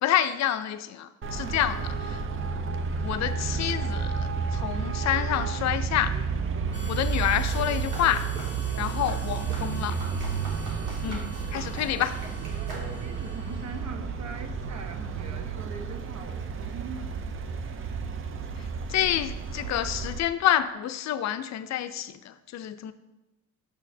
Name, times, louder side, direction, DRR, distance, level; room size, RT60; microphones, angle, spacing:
voice 1, 0.0-2.2 3.0-6.2 6.9-8.3 8.8-10.0 11.0-11.2 11.5-12.1 18.9-22.9, left 11 dB, 65° left, 11 dB, 0.4 m, -28 dB
Traffic noise roadway noise, 1.2-20.2, right 5 dB, 45° right, 0.5 m, -31 dB
Harmonica, 6.7-14.0, right 1 dB, 25° left, 0.8 m, -47 dB
sound 1, 7.4-13.3, right 1 dB, 85° right, 1.6 m, -42 dB
voice 2, 10.9-11.2 11.5-12.1 13.0-17.1, right 4 dB, 65° right, 6 dB, 0.9 m, -42 dB
6.6 x 6.4 x 2.7 m, 1.0 s
cardioid pair, 90°, 30 cm